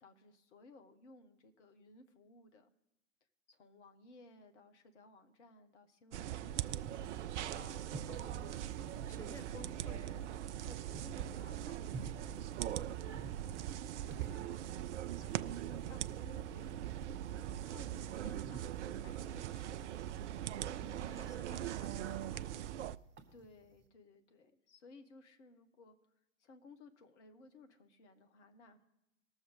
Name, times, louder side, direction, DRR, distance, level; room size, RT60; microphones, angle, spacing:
voice 1, 0.0-2.7 3.5-6.8 7.5-9.7 10.6-13.4 14.1-14.7 15.1-16.8 17.6-20.0 23.3-26.0 26.4-28.8, left 2 dB, 60° left, 7 dB, 1.3 m, -59 dB
sound 1, 6.1-23.0, right 11 dB, 65° right, 0.5 m, -41 dB
sound 2, 6.5-23.9, right 3 dB, 30° right, 1.3 m, -55 dB
voice 2, 8.0-10.3 20.8-22.7, left 5 dB, 10° left, 7 dB, 0.4 m, -56 dB
19.0 x 7.0 x 3.8 m, 0.88 s
figure-of-eight pair, 85°, 39 cm